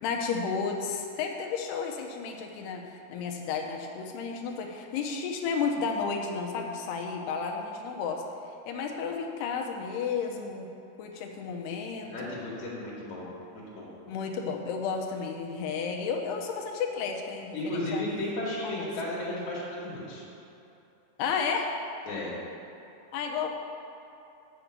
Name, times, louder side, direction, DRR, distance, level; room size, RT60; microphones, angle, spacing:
voice 1, 0.0-8.2 8.7-10.7 11.0-12.3 14.1-18.3 18.6-18.9 21.2-21.8 23.1-23.5, left 5 dB, 75° left, 2 dB, 2.7 m, -32 dB
voice 2, 12.0-13.2 13.5-13.9 17.5-20.2 22.1-22.3, left 1 dB, 50° left, -6 dB, 3.1 m, -34 dB
7.6 x 7.0 x 8.2 m, 2.9 s
omnidirectional pair, 4.9 m